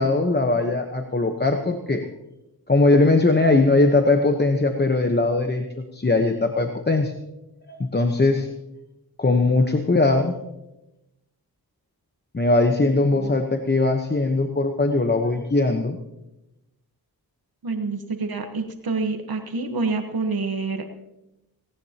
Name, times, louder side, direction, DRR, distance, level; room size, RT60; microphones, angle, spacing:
voice 1, 0.0-2.1 2.7-7.1 7.7-8.5 9.2-10.4 12.3-16.0, left 2 dB, 25° left, 5 dB, 1.0 m, -20 dB
voice 2, 17.6-20.8, right 3 dB, 65° right, 5 dB, 1.3 m, -27 dB
18.0 x 18.0 x 2.9 m, 0.93 s
wide cardioid pair, 95°, 39 cm